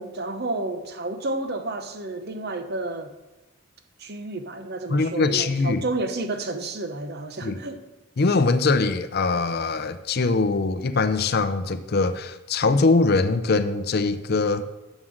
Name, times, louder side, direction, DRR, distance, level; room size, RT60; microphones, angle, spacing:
voice 1, 0.0-3.1 4.0-7.8, right 2 dB, 50° right, 8 dB, 0.8 m, -31 dB
voice 2, 4.9-5.8 7.4-7.6 8.2-14.6, left 3 dB, 50° left, 11 dB, 0.5 m, -22 dB
7.4 x 7.3 x 6.4 m, 1.0 s
head